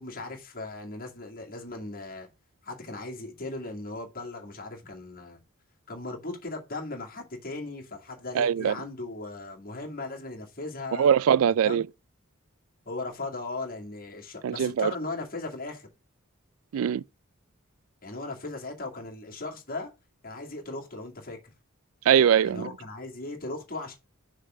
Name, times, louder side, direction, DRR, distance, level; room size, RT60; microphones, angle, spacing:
voice 1, 0.0-2.3 2.6-5.4 5.9-11.1 11.5-11.8 12.9-15.9 18.0-19.9 20.2-21.4 22.4-23.9, left 2 dB, 40° left, 2.2 m, -37 dB
voice 2, 8.3-8.7 11.0-11.9 14.4-14.9 16.7-17.0 22.1-22.7, right 8 dB, 70° right, 0.3 m, -22 dB
6.6 x 3.7 x 6.3 m
head